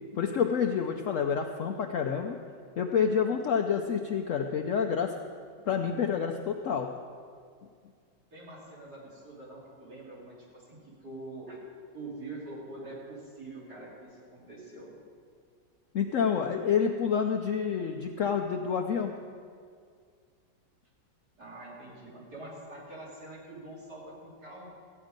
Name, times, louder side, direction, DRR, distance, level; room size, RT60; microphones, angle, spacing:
voice 1, 0.1-2.4 2.8-5.1 5.7-6.9 15.9-19.1, left 7 dB, 65° left, 3 dB, 0.8 m, -28 dB
voice 2, 8.3-11.6 11.9-14.9 21.4-24.7, right 2 dB, 60° right, -7 dB, 4.1 m, -45 dB
15.0 x 9.7 x 5.1 m, 2.1 s
omnidirectional pair, 1.9 m